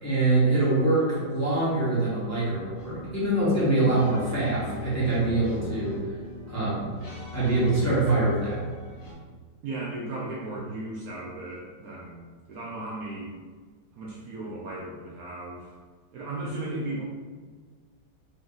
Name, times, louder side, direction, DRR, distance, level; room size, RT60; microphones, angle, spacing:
voice 1, 0.0-6.0 6.5-6.9 7.3-8.6, right 2 dB, 10° left, -9 dB, 0.9 m, -24 dB
sound 1, 2.8-9.1, left 1 dB, 55° left, 1.6 m, -40 dB
voice 2, 9.6-13.3 13.9-15.7 16.1-17.0, right 2 dB, 65° right, -4 dB, 1.0 m, -36 dB
3.8 x 2.7 x 3.8 m, 1.5 s
omnidirectional pair, 1.9 m